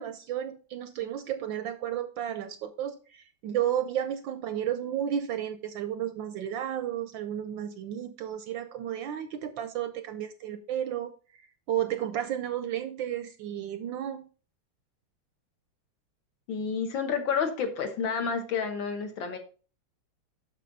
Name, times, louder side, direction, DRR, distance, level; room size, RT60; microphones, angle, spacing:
voice 1, 0.0-14.3, right 10 dB, 75° right, 10 dB, 1.1 m, -33 dB
voice 2, 16.5-19.4, left 6 dB, 65° left, 5 dB, 1.8 m, -30 dB
7.5 x 6.1 x 3.9 m, 0.38 s
omnidirectional pair, 2.4 m